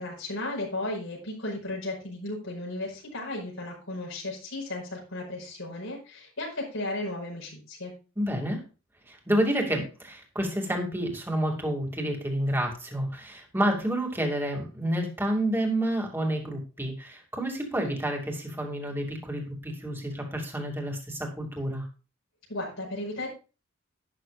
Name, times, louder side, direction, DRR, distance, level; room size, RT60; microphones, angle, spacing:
voice 1, 0.0-7.9 22.5-23.3, left 2 dB, 85° left, -3 dB, 5.2 m, -35 dB
voice 2, 8.2-8.6 9.1-21.8, right 1 dB, 10° right, 1 dB, 2.5 m, -29 dB
12.5 x 10.5 x 2.5 m, 0.33 s
head